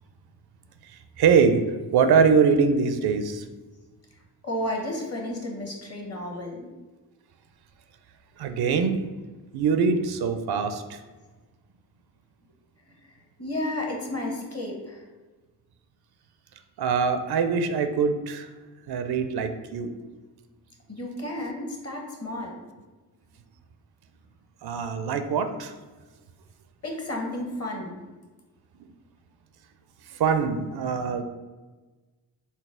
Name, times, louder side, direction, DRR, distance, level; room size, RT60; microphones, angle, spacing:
voice 1, 1.2-1.6 1.9-3.4 8.4-9.0 9.5-11.0 16.8-18.5 18.9-19.9 24.6-25.7 30.1-31.2, right 5 dB, 70° right, 8 dB, 0.5 m, -23 dB
voice 2, 4.4-6.7 12.9-15.1 20.9-22.6 26.8-28.0, left 1 dB, 40° left, 1 dB, 1.1 m, -32 dB
4.0 x 2.0 x 3.6 m, 1.2 s
cardioid pair, 50°, 40 cm